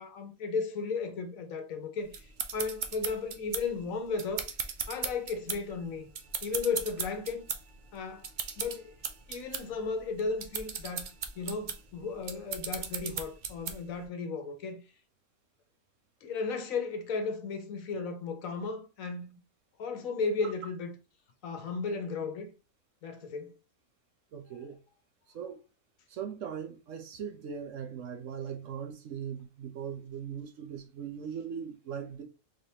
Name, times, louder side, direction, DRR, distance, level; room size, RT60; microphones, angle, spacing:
voice 1, 0.0-2.1 2.5-4.5 4.9-6.1 6.4-7.5 7.9-8.3 8.6-8.9 9.3-14.8 16.2-19.4 19.8-20.9 21.4-22.5 23.0-23.6, left 4 dB, 70° left, 1.1 m, -35 dB
sound 1, 2.1-14.0, right 6 dB, 80° right, 0.4 m, -38 dB
voice 2, 24.3-24.8 25.3-25.6 26.1-32.2, right 8 dB, 65° right, 1.0 m, -39 dB
3.8 x 3.3 x 2.8 m
omnidirectional pair, 1.5 m